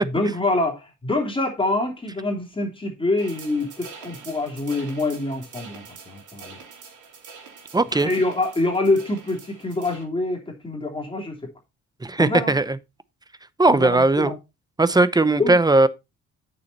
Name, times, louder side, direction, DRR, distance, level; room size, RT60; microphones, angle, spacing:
voice 1, 0.0-6.6 7.9-11.5 12.2-12.5 13.7-14.3 15.4-15.6, left 2 dB, 15° left, 3.1 m, -25 dB
sound 1, 3.2-10.0, right 5 dB, 75° right, 3.7 m, -44 dB
voice 2, 7.7-8.1 12.0-12.8 13.6-14.4 14.8-15.9, right 2 dB, 15° right, 0.8 m, -18 dB
8.5 x 7.0 x 4.1 m
cardioid pair, 90°, 30 cm